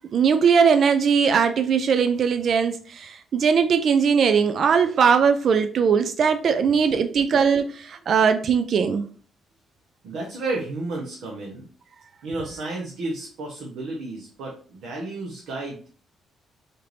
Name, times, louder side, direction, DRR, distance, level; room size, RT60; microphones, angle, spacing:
voice 1, 0.1-9.0, right 6 dB, 60° right, 0.4 m, -20 dB
voice 2, 10.0-11.7 12.2-15.9, right 2 dB, 85° right, 1.0 m, -32 dB
4.3 x 2.6 x 3.3 m
cardioid pair, 90°, 0 cm